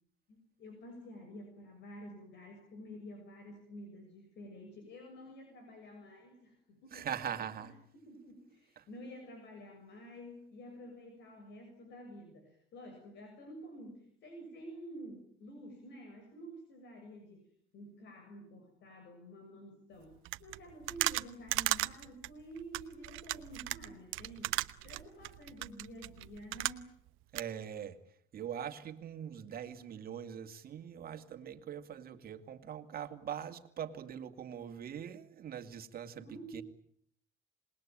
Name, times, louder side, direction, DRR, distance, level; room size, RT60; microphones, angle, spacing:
voice 1, 0.3-7.1 7.6-7.8 8.0-26.9 36.2-36.6, equal, 60° left, 6.8 m, -50 dB
voice 2, 6.9-7.7 8.8-8.9 27.3-28.0 28.3-36.6, right 9 dB, 50° right, 2.4 m, -42 dB
sound 1, 20.2-27.1 27.3-27.4, right 18 dB, 80° right, 1.0 m, -36 dB
27.0 x 20.5 x 8.9 m
cardioid pair, 120°, 20 cm